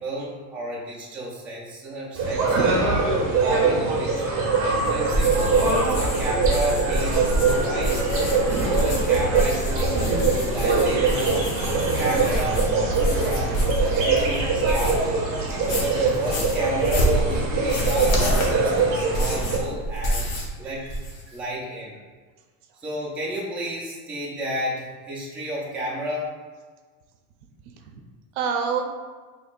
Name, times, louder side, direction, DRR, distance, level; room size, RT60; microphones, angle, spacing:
voice 1, 0.0-2.8 3.4-4.4 4.9-8.0 8.5-11.5 12.0-13.5 14.0-15.3 15.7-20.3 20.5-20.8 21.3-21.9 22.8-26.3, right 1 dB, 5° right, -6 dB, 0.4 m, -31 dB
sound 1, 2.1-19.6, right 3 dB, 35° right, 0.9 m, -23 dB
voice 2, 2.5-3.0 8.4-8.7 10.1-10.5 13.9-14.1 18.3-18.4 28.4-28.9, right 5 dB, 65° right, 5 dB, 0.6 m, -28 dB
sound 2, 5.1-15.1 15.5-20.6 20.8-21.4, right 1 dB, 40° left, 0.9 m, -27 dB
6.2 x 3.0 x 2.4 m, 1.4 s
cardioid pair, 165°, 40 cm